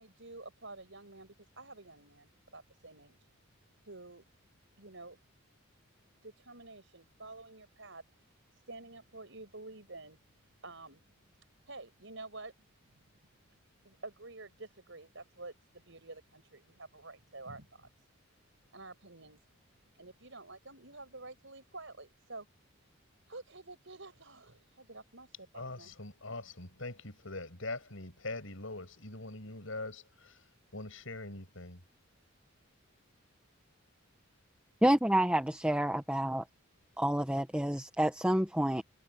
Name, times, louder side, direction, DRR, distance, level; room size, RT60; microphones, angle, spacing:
voice 1, 0.0-3.2 3.8-4.2 4.8-5.2 6.2-8.0 8.5-11.0 11.6-13.0 13.8-18.1 18.7-19.4 19.9-22.5 23.3-25.9, right 2 dB, 60° right, 6.6 m, -49 dB
voice 2, 25.6-30.3 30.7-31.8, left 2 dB, 70° left, 7.0 m, -42 dB
voice 3, 34.8-36.4 37.0-38.8, right 1 dB, 5° right, 1.2 m, -28 dB
head